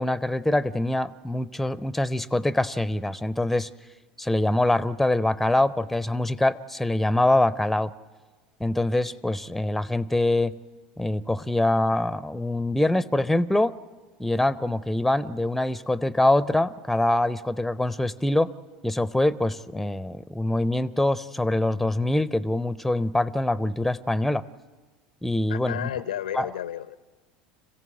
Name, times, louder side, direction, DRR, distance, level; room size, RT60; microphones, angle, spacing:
voice 1, 0.0-3.7 4.2-7.9 8.6-10.6 11.0-13.8 14.2-18.5 18.8-24.5 25.2-25.9 26.3-26.5, left 1 dB, 5° left, 18 dB, 0.6 m, -24 dB
voice 2, 25.5-27.0, left 11 dB, 75° left, 18 dB, 0.6 m, -32 dB
26.0 x 16.0 x 7.8 m, 1.4 s
figure-of-eight pair, 75°, 4 cm